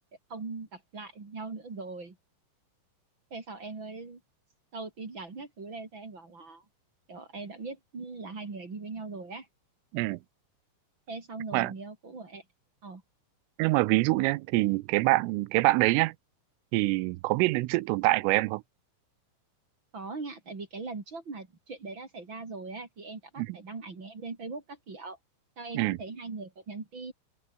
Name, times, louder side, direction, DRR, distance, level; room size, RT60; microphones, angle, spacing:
voice 1, 0.3-2.2 3.3-4.2 4.7-6.6 7.1-9.5 11.1-12.4 12.8-13.0 19.9-25.2 25.6-27.1, right 3 dB, 30° right, 3.2 m, -40 dB
voice 2, 13.6-16.1 16.7-18.6 23.4-23.5 25.7-26.0, right 21 dB, 85° right, 3.3 m, -25 dB
open air
omnidirectional pair, 5.8 m